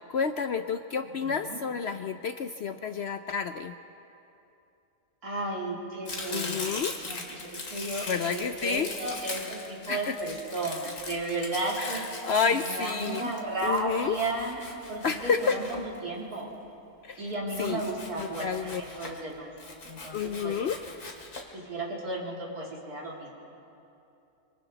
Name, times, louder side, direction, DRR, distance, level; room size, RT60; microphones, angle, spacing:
voice 1, 0.0-3.7 6.3-6.9 8.1-8.9 9.9-10.1 11.8-13.3 13.6-14.2 15.0-15.6 17.0-17.2 17.6-17.8 18.2-18.8 20.1-20.8, left 6 dB, 60° left, 8 dB, 0.7 m, -30 dB
voice 2, 1.2-1.6 5.2-6.7 7.0-12.0 12.5-14.6 14.9-16.5 17.2-19.5 19.8-20.5 21.5-23.3, right 2 dB, 80° right, -4 dB, 3.8 m, -34 dB
Domestic sounds home sounds, 6.1-16.3 17.5-19.2 19.6-21.4, left 3 dB, 90° left, 2.8 m, -40 dB
25.5 x 25.5 x 4.0 m, 2.7 s
omnidirectional pair, 1.6 m